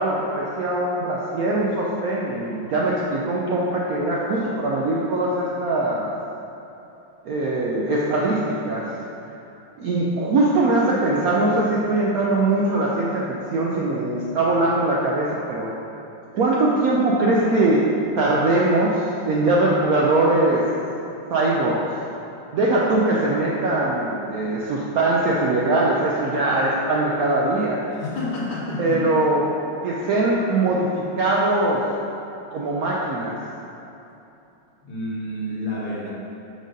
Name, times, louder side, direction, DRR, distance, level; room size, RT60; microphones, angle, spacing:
voice 1, 0.0-6.1 7.2-8.9 9.8-15.7 16.3-17.8 18.2-20.6 21.3-21.8 22.5-27.8 28.8-29.4 29.8-31.8 32.5-33.4, right 2 dB, 70° right, -4 dB, 0.8 m, -21 dB
voice 2, 27.9-29.0 34.8-36.1, left 1 dB, 60° left, -4 dB, 1.5 m, -29 dB
4.8 x 4.3 x 5.1 m, 2.9 s
omnidirectional pair, 2.1 m